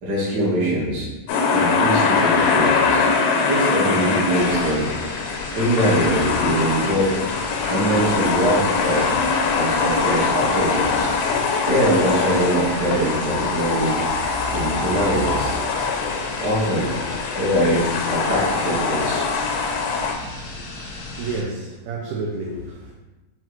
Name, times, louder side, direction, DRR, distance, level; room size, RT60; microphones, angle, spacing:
voice 1, 0.0-1.1 1.5-3.0 3.4-4.9 5.5-7.1 7.6-9.1 9.5-11.1 11.6-14.0 14.5-15.6 16.3-17.8 18.1-19.7 22.5-22.6, right 1 dB, 60° right, -7 dB, 1.0 m, -23 dB
sound 1, 1.3-20.1, left 4 dB, 90° left, 2.3 m, -22 dB
sound 2, 4.3-21.4, left 2 dB, 70° left, 1.4 m, -36 dB
voice 2, 21.2-22.9, right 3 dB, 85° right, -1 dB, 1.6 m, -30 dB
6.2 x 2.5 x 3.0 m, 1.1 s
omnidirectional pair, 3.9 m